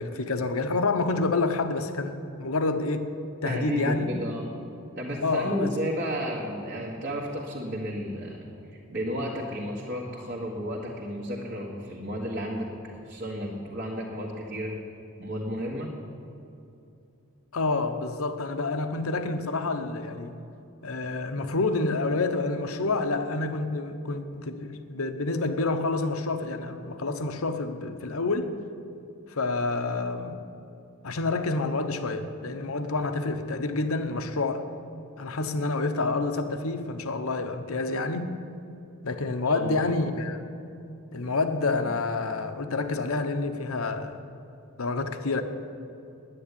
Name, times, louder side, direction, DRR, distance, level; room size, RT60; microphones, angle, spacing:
voice 1, 0.0-3.1 3.4-4.1 5.2-5.9 17.5-20.4 20.8-28.6 29.3-30.4 31.0-34.6 35.2-38.3 39.0-40.4 41.1-44.2 44.8-45.4, left 3 dB, 70° left, 0.9 m, -28 dB
voice 2, 3.4-4.5 5.0-8.4 8.7-14.7 15.2-15.9 39.4-39.9, equal, 50° right, 1.8 m, -32 dB
10.0 x 9.5 x 10.0 m
head